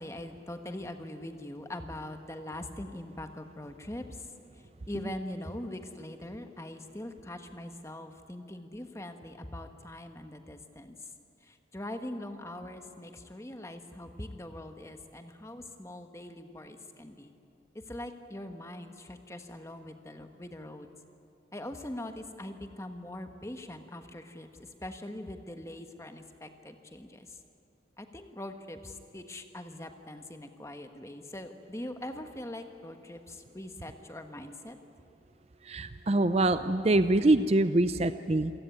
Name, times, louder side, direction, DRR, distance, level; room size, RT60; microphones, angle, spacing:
voice 1, 0.0-4.1 4.9-11.0 11.5-17.3 17.7-20.9 21.5-27.3 28.0-34.8, left 1 dB, 15° left, 6 dB, 1.3 m, -42 dB
voice 2, 35.7-38.5, right 2 dB, 35° right, 11 dB, 0.5 m, -24 dB
27.5 x 16.5 x 9.5 m, 2.8 s
head